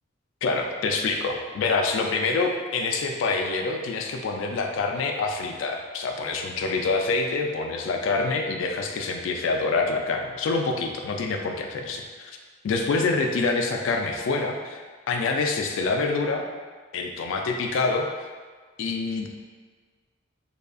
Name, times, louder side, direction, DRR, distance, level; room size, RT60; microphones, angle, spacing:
voice 1, 0.4-12.4 12.6-16.4 16.9-18.3 18.8-19.3, left 3 dB, 70° left, 2 dB, 0.3 m, -26 dB
2.7 x 2.4 x 2.3 m, 1.5 s
head